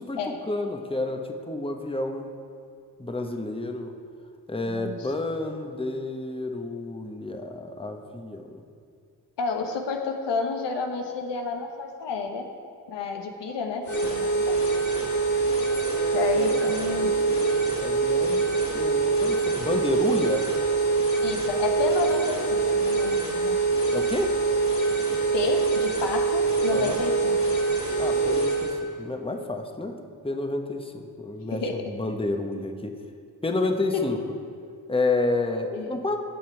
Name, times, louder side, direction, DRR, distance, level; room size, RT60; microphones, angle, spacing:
voice 1, 0.0-2.3 3.0-3.9 4.5-8.5 16.3-16.6 16.9-18.5 18.7-20.4 23.9-24.3 26.7-27.0 28.0-30.0 30.2-32.9 33.4-34.2 34.9-36.2, left 2 dB, 15° left, 5 dB, 1.0 m, -30 dB
voice 2, 4.6-5.1 9.4-12.5 12.9-14.6 16.1-17.2 21.2-23.6 25.3-27.4 31.6-31.8 33.9-34.2 35.7-35.9, left 4 dB, 85° left, 4 dB, 1.0 m, -30 dB
sound 1, 13.8-28.8, right 4 dB, 45° left, 2.7 m, -24 dB
15.5 x 6.1 x 4.5 m, 2.3 s
cardioid pair, 50°, 42 cm